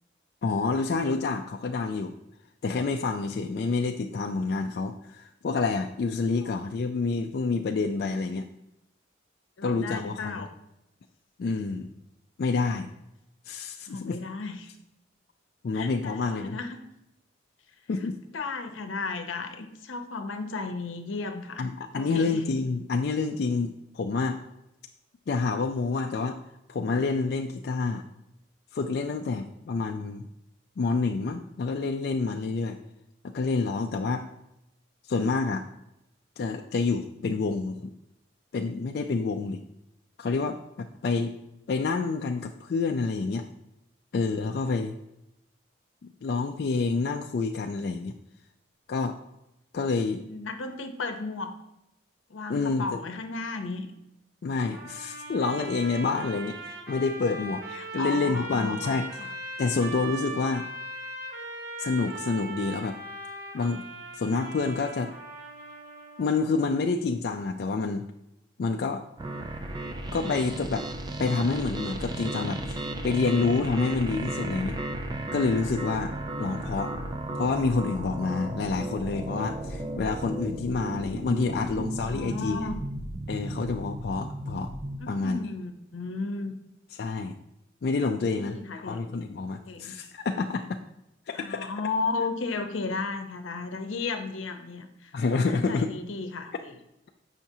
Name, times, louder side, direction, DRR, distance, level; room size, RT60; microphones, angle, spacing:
voice 1, 0.4-2.1 2.6-8.5 9.6-10.5 11.4-11.9 12.4-12.9 13.5-14.2 15.6-16.6 17.9-18.2 21.6-24.4 25.3-26.4 26.7-28.1 28.7-30.3 30.8-32.8 33.3-34.3 35.1-35.6 36.4-37.9 38.5-39.6 40.2-41.3 41.7-43.5 44.1-45.0 46.2-48.1 48.9-49.2 49.7-50.2 52.5-53.0 54.4-57.6 57.9-59.1 59.6-60.6 61.8-63.0 63.5-63.8 64.1-65.1 66.2-68.1 68.6-69.0 70.1-70.9 71.2-74.8 75.3-76.1 76.4-76.9 77.3-82.7 83.3-84.7 85.1-85.4 87.0-87.4 87.8-90.8 91.3-91.7 95.1-95.9, left 4 dB, 55° left, 3 dB, 0.3 m, -28 dB
voice 2, 9.6-10.5 13.9-14.7 15.7-16.8 18.3-21.6 22.0-22.4 50.2-51.5 52.3-53.9 57.7-59.3 81.4-82.8 85.0-86.5 88.3-89.1 89.7-89.9 91.3-96.8, left 3 dB, 85° left, 7 dB, 0.7 m, -34 dB
sound 1, 54.7-66.3, right 2 dB, 50° right, 1.0 m, -39 dB
sound 2, 69.2-85.0, right 1 dB, 20° right, 0.4 m, -34 dB
7.3 x 5.7 x 2.7 m, 0.85 s
head